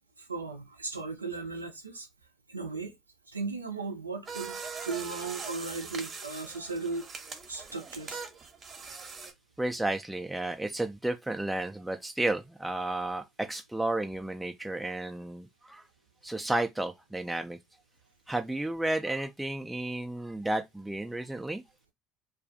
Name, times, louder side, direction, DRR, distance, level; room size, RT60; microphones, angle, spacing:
voice 1, 0.2-2.1 2.5-2.9 3.3-4.6 4.8-7.1 7.5-8.2, right 4 dB, 90° right, 0.5 m, -36 dB
sound 1, 4.3-9.3, right 5 dB, 40° right, 0.7 m, -41 dB
voice 2, 9.6-15.8 16.2-17.6 18.3-21.6, right 1 dB, 5° right, 0.3 m, -32 dB
2.3 x 2.3 x 2.5 m
figure-of-eight pair, 60°, 0 cm